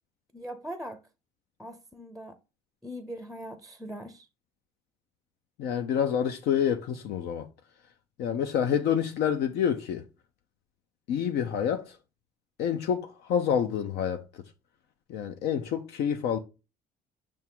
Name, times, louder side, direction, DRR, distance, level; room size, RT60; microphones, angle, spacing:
voice 1, 0.3-1.0 1.6-2.4 2.8-4.3, equal, ahead, 0.5 m, -40 dB
voice 2, 5.6-7.5 8.2-10.0 11.1-12.0 12.6-14.4 15.1-16.4, left 8 dB, 80° left, 0.7 m, -28 dB
6.1 x 3.6 x 4.5 m
cardioid pair, 110°, 17 cm